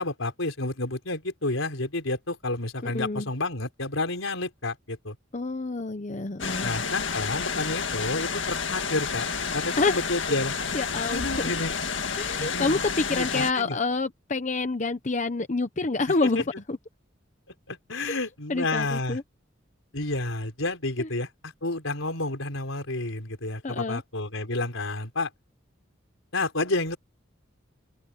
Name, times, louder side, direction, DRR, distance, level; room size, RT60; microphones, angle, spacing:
voice 1, 0.0-5.2 6.6-9.3 9.5-10.5 11.1-11.8 12.4-12.8 13.1-13.8 16.4-16.5 17.7-19.2 19.9-25.3 26.3-27.0, left 2 dB, 85° left, 4.4 m, -30 dB
voice 2, 2.8-3.3 5.3-6.7 9.8-10.4 10.7-11.5 12.2-16.8 17.9-18.2 18.5-19.2 21.0-21.1 23.6-24.0, left 3 dB, 35° left, 0.8 m, -28 dB
sound 1, 6.4-13.5, left 5 dB, 65° left, 1.9 m, -30 dB
open air
head